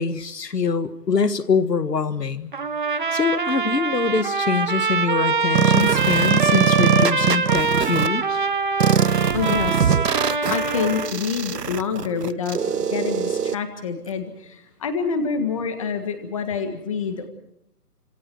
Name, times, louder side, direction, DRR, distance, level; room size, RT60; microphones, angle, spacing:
voice 1, 0.0-2.5 3.1-8.4, left 5 dB, 85° left, 12 dB, 1.8 m, -24 dB
Trumpet, 2.5-11.1, right 4 dB, 30° right, 1.0 m, -24 dB
sound 1, 5.5-8.1 8.8-13.5, right 7 dB, 80° right, 1.1 m, -22 dB
voice 2, 9.3-9.9 10.5-12.6 12.9-17.3, left 6 dB, 20° left, 8 dB, 1.7 m, -27 dB
29.5 x 27.0 x 4.6 m, 0.75 s
hypercardioid pair, 170°, 47 cm